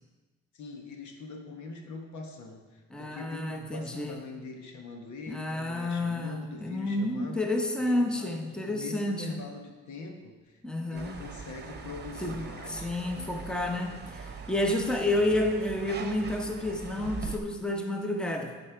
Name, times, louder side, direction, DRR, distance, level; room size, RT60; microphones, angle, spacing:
voice 1, 0.5-7.5 7.8-10.6 10.9-13.4 14.9-15.5, left 3 dB, 70° left, 3 dB, 1.3 m, -43 dB
voice 2, 2.9-4.2 5.3-9.4 10.6-11.2 12.2-12.4 12.7-18.6, left 1 dB, 5° left, 3 dB, 0.9 m, -30 dB
sound 1, 10.9-17.4, right 4 dB, 35° right, 1.0 m, -41 dB
10.0 x 4.3 x 5.0 m, 1.3 s
cardioid pair, 90°, 30 cm